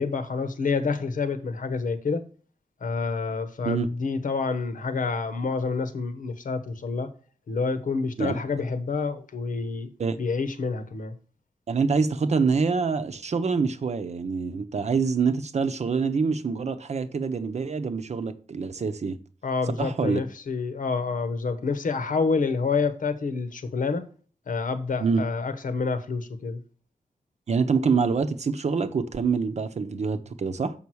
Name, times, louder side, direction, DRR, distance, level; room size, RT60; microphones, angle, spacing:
voice 1, 0.0-2.2 2.8-7.1 7.5-9.9 10.2-11.1 19.4-24.0 24.5-26.6, left 4 dB, 70° left, 1.1 m, -28 dB
voice 2, 11.7-19.2 19.8-20.2 25.0-25.2 27.5-30.7, right 5 dB, 50° right, 0.8 m, -25 dB
7.0 x 5.9 x 4.6 m
wide cardioid pair, 160°, 14 cm